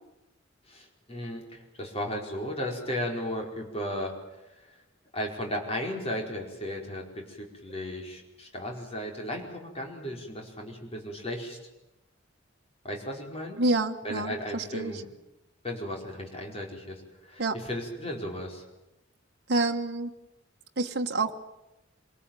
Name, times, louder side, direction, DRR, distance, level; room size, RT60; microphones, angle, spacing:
voice 1, 0.7-4.1 4.5-4.6 5.1-11.6 12.8-13.6 14.0-15.1 15.6-18.6, equal, 30° left, 1 dB, 5.0 m, -35 dB
voice 2, 13.6-14.9 17.4-17.5 19.5-20.1 20.8-21.3, right 2 dB, 55° right, 3 dB, 1.3 m, -28 dB
26.0 x 19.0 x 9.1 m, 0.97 s
head